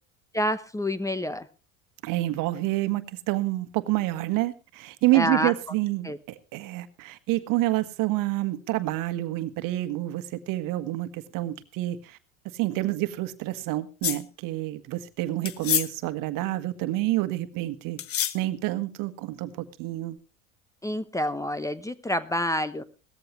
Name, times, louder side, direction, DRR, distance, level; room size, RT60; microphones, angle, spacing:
voice 1, 0.3-1.5 5.1-5.5 6.0-6.2 20.8-22.8, left 1 dB, 10° left, 14 dB, 0.9 m, -28 dB
voice 2, 2.0-12.2 12.5-18.0 18.3-20.2, right 17 dB, 55° right, 11 dB, 1.6 m, -28 dB
sound 1, 14.0-14.2 15.4-15.9 18.0-18.4, left 11 dB, 35° left, 1.1 m, -26 dB
18.0 x 14.0 x 3.2 m, 0.32 s
hypercardioid pair, 90°, 39 cm